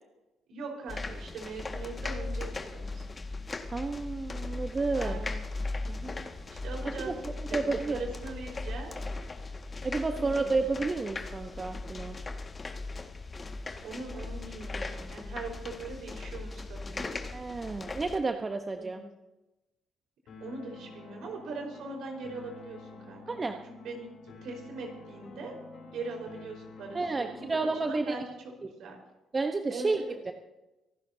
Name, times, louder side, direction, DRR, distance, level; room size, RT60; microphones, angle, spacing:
voice 1, 0.5-3.1 4.9-5.5 5.8-6.1 6.5-7.2 7.5-9.0 10.1-10.6 13.8-17.1 18.8-19.0 20.4-25.6 25.9-27.6 27.9-28.3 28.8-29.0 29.7-30.2, right 3 dB, 65° right, 0 dB, 4.8 m, -41 dB
sound 1, 0.9-18.2, left 3 dB, 30° left, 1.9 m, -38 dB
voice 2, 3.7-5.2 7.0-7.1 7.5-8.0 9.8-12.2 17.3-19.0 23.3-23.6 26.9-28.1 28.6-28.7 29.3-30.3, right 3 dB, 30° right, 6 dB, 1.1 m, -31 dB
sound 2, 20.3-28.3, left 3 dB, 65° left, 4.3 m, -49 dB
26.0 x 12.0 x 2.9 m, 1.0 s
hypercardioid pair, 50°, 0 cm